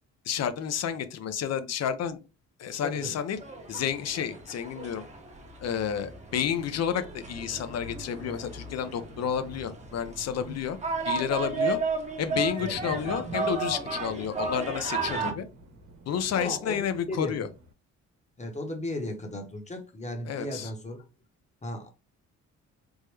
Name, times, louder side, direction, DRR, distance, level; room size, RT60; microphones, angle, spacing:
voice 1, 0.3-2.2 2.6-3.4 3.7-5.0 5.6-10.8 11.0-11.8 12.2-15.4 16.1-17.5 20.3-20.7, left 8 dB, 55° left, 0.6 m, -30 dB
voice 2, 2.8-3.2 10.2-10.6 12.6-12.8 15.1-15.4 16.3-17.5 18.4-21.0 21.6-21.9, left 1 dB, 25° left, 1.0 m, -36 dB
sound 1, 3.4-15.3, right 4 dB, 25° right, 0.9 m, -34 dB
Thunder, 8.0-17.7, right 2 dB, 70° right, 1.1 m, -49 dB
3.5 x 2.1 x 3.2 m
cardioid pair, 90°, 30 cm